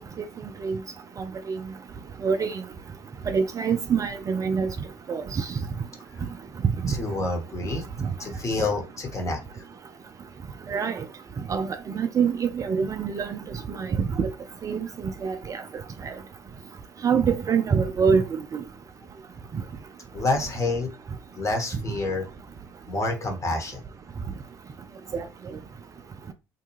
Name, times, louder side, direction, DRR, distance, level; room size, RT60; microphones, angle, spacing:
voice 1, 2.2-2.5 3.3-4.7 5.1-5.4 6.8-6.9 10.7-11.0 11.5-11.7 12.0-13.4 13.8-13.9 14.2-14.3 14.6-14.9 15.2-15.6 17.0-18.2 18.5-18.6 25.1-25.2, right 6 dB, 30° right, 0.4 m, -24 dB
voice 2, 6.9-7.9 8.2-9.4 20.1-20.9 21.4-22.3 22.9-23.8, left 2 dB, 30° left, 1.0 m, -28 dB
2.6 x 2.2 x 3.0 m
hypercardioid pair, 65°, 11 cm